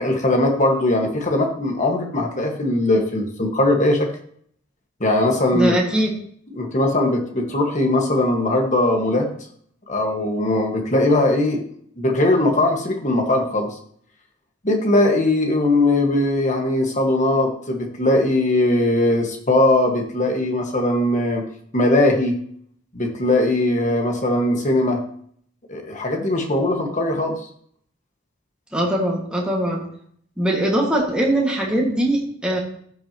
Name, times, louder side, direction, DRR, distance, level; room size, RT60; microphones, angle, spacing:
voice 1, 0.0-4.1 5.0-5.8 6.6-9.3 9.9-11.6 12.0-13.7 14.6-21.4 21.7-22.4 22.9-25.0 25.7-27.4, left 1 dB, 40° left, 3 dB, 1.6 m, -20 dB
voice 2, 5.5-6.1 28.7-29.8 30.4-32.6, right 1 dB, 5° right, -3 dB, 1.9 m, -21 dB
14.5 x 6.0 x 3.0 m, 0.62 s
head